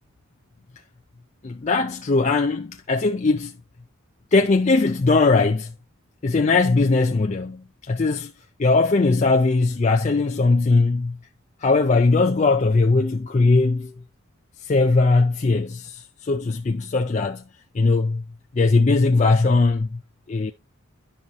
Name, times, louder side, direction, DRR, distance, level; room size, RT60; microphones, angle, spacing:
voice 1, 1.4-3.5 4.3-5.7 6.2-8.3 8.6-11.2 11.6-13.9 14.6-17.4 17.7-18.2 18.5-20.0 20.3-20.5, left 3 dB, 35° left, 0.4 m, -20 dB
11.0 x 5.5 x 2.9 m
head